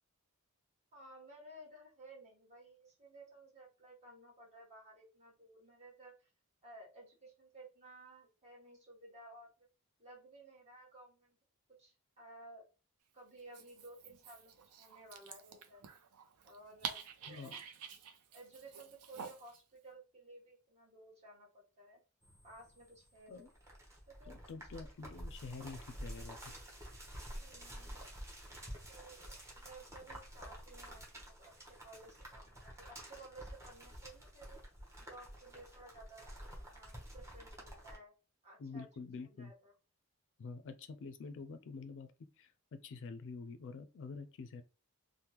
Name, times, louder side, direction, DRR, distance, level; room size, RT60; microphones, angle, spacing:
voice 1, 0.9-6.3 6.6-9.7 10.0-11.4 11.8-12.7 13.1-14.5 14.8-15.8 16.4-17.6 18.3-22.0 22.4-23.5 24.1-24.4 24.7-24.8 27.4-28.0 28.9-34.6 35.0-36.3 36.7-38.1 38.4-38.9 39.2-39.7, right 2 dB, 30° right, 1.2 m, -56 dB
Dog, 13.4-19.6, right 7 dB, 90° right, 0.5 m, -49 dB
voice 2, 17.3-17.6 23.3-23.5 24.3-26.5 38.6-39.5 40.4-42.1 42.4-44.6, left 4 dB, 60° left, 0.4 m, -47 dB
sound 1, 22.2-38.0, equal, 15° right, 0.8 m, -50 dB
3.4 x 2.1 x 2.9 m
head